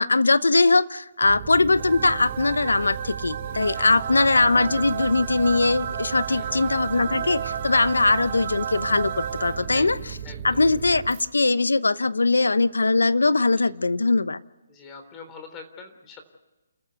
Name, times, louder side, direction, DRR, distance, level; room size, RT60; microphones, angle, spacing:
voice 1, 0.0-10.0 10.4-14.4, left 3 dB, 90° left, 17 dB, 0.8 m, -21 dB
sound 1, 1.2-11.3, right 8 dB, 25° right, 2.6 m, -37 dB
sound 2, 1.8-10.0, right 8 dB, 45° right, 1.7 m, -33 dB
voice 2, 3.7-4.2 6.3-6.7 9.7-9.9 10.2-10.6 13.6-13.7 14.7-16.2, left 4 dB, 20° left, 6 dB, 3.5 m, -44 dB
29.5 x 14.0 x 8.2 m, 1.1 s
hypercardioid pair, 150°, 0 cm